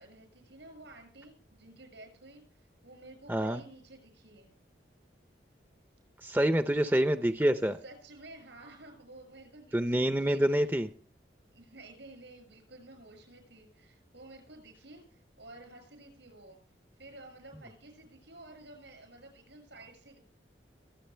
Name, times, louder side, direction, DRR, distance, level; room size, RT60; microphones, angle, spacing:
voice 1, 0.0-4.5 6.8-7.0 7.8-10.6 11.5-16.6 17.0-20.2, right 2 dB, 85° right, 6 dB, 6.5 m, -52 dB
voice 2, 3.3-3.6 6.2-7.8 9.7-10.9, right 1 dB, 10° right, 9 dB, 0.5 m, -27 dB
24.0 x 8.3 x 3.3 m, 0.41 s
head